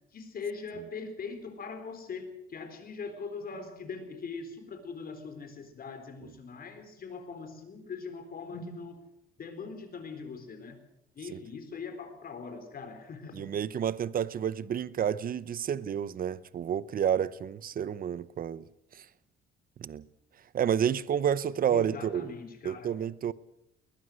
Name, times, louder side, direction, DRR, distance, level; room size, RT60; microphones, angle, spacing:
voice 1, 0.1-9.0 9.4-10.8 11.1-13.6 15.7-15.8 21.7-22.9, left 4 dB, 45° left, 3.9 m, -41 dB
voice 2, 13.3-18.6 18.9-19.1 19.8-20.0 20.5-22.3 22.6-23.3, right 9 dB, 45° right, 0.7 m, -30 dB
21.5 x 19.5 x 6.3 m
cardioid pair, 140°, 21 cm